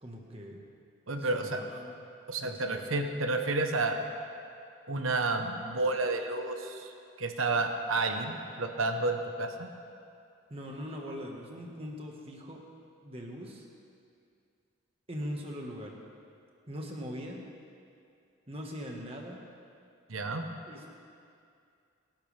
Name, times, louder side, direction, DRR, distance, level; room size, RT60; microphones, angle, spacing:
voice 1, 0.0-0.6 1.2-2.0 2.4-2.8 10.5-12.6 13.0-13.6 15.1-16.0 16.7-17.4 18.5-19.4 20.7-20.9, equal, 30° right, 0 dB, 1.7 m, -41 dB
voice 2, 1.1-1.6 2.3-4.0 4.9-6.9 7.2-9.7 20.1-20.5, right 3 dB, 90° right, 5 dB, 1.2 m, -30 dB
23.5 x 12.0 x 3.5 m, 2.4 s
head